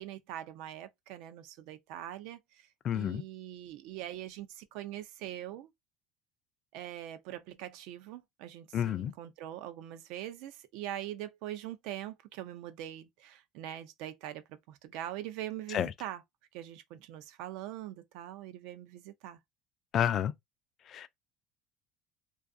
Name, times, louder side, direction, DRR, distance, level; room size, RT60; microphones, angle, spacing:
voice 1, 0.0-2.7 2.9-5.7 6.7-16.2 16.5-19.4, right 12 dB, 75° right, 0.4 m, -43 dB
voice 2, 2.8-3.2 8.7-9.1 15.7-15.9 19.9-20.3 20.9-21.1, left 10 dB, 50° left, 0.3 m, -30 dB
2.4 x 2.3 x 2.5 m
supercardioid pair, 105°, 0 cm